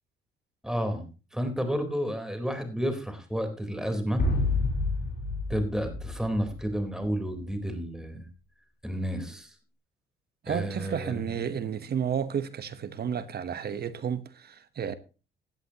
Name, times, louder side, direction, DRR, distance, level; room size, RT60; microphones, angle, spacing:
voice 1, 0.6-1.1 1.3-4.2 5.5-8.3 8.8-9.5 10.5-11.4, equal, 5° right, 4.0 m, -31 dB
sound 1, 4.2-7.1, left 2 dB, 50° left, 3.9 m, -29 dB
voice 2, 10.4-14.9, right 8 dB, 55° right, 1.1 m, -32 dB
17.5 x 11.0 x 2.9 m
cardioid pair, 90°, 20 cm